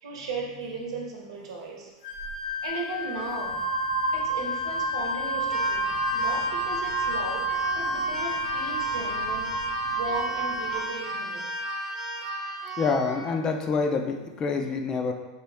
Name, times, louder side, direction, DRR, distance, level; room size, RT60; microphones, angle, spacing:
voice 1, 0.0-1.9 2.6-3.5 4.1-9.5 9.9-11.5, right 3 dB, 85° right, -1 dB, 1.0 m, -36 dB
Wind instrument woodwind instrument, 2.0-12.4, left 6 dB, 75° left, 0.7 m, -34 dB
sound 1, 2.2-2.3 3.2-10.9, right 5 dB, 60° right, 0.6 m, -30 dB
Keyboard (musical), 5.5-13.2, right 3 dB, 15° right, 0.9 m, -36 dB
voice 2, 12.8-15.1, left 4 dB, 25° left, 4 dB, 0.4 m, -26 dB
4.3 x 3.0 x 3.4 m, 1.1 s
supercardioid pair, 155°, 3 cm